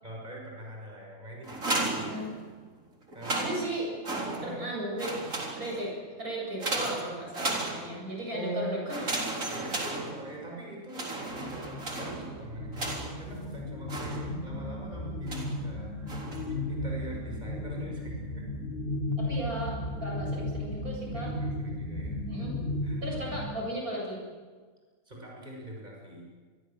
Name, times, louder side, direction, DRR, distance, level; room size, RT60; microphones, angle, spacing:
voice 1, 0.0-2.2 3.1-3.4 4.2-4.7 8.3-8.8 9.5-18.5 21.1-22.2 22.8-23.0 25.0-26.3, right 1 dB, 30° right, -2 dB, 6.7 m, -42 dB
sound 1, 1.4-2.7 3.1-4.7 5.0-5.9 6.6-8.2 8.9-10.5 10.9-13.3 13.9-14.6 15.3-15.6 16.1-16.6, right 2 dB, 60° right, 4.4 m, -35 dB
voice 2, 2.0-2.3 3.3-3.9 4.4-5.2 5.6-5.9 6.2-9.2 19.2-21.3 22.3-22.6 23.0-24.2, right 1 dB, 75° right, -2 dB, 8.7 m, -36 dB
sound 2, 11.3-23.5, left 1 dB, 35° left, 3.4 m, -35 dB
27.5 x 22.5 x 7.6 m, 1.5 s
omnidirectional pair, 1.6 m